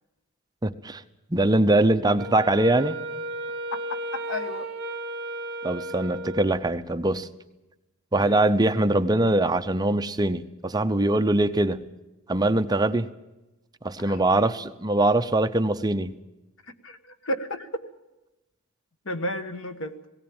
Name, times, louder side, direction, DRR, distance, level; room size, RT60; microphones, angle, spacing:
voice 1, 0.6-1.0 1.3-3.0 5.6-7.3 8.1-11.9 12.3-13.1 13.8-16.2, right 2 dB, 20° right, 10 dB, 0.7 m, -22 dB
Wind instrument woodwind instrument, 2.2-6.8, right 1 dB, 55° right, 1.5 m, -34 dB
voice 2, 3.7-4.7 8.1-8.4 14.0-14.3 16.8-17.9 19.0-20.0, left 1 dB, 65° left, 8 dB, 1.5 m, -33 dB
18.0 x 18.0 x 8.8 m, 1.0 s
head